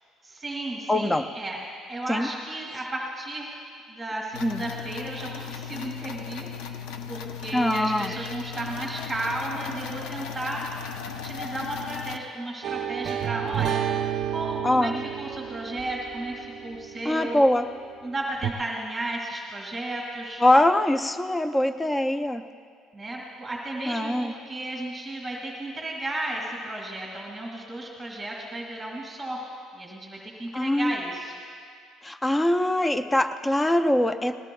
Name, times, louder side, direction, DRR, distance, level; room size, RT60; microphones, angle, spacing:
voice 1, 0.2-1.6 1.9-3.6 3.9-6.5 7.1-10.7 11.1-13.8 14.3-14.9 15.2-17.4 18.0-20.5 22.9-29.4 29.7-31.4, right 1 dB, 5° right, -2 dB, 2.1 m, -34 dB
voice 2, 0.9-1.3 2.1-2.3 4.4-4.6 7.5-8.1 14.6-15.0 17.0-17.7 20.4-22.4 23.9-24.3 30.5-31.0 32.0-34.4, left 1 dB, 15° left, 9 dB, 0.5 m, -23 dB
sound 1, 4.3-12.2, left 7 dB, 90° left, 0.7 m, -37 dB
sound 2, 12.6-17.5 18.4-18.5, right 10 dB, 55° right, 0.5 m, -31 dB
20.0 x 18.0 x 2.3 m, 2.1 s
cardioid pair, 115°, 0 cm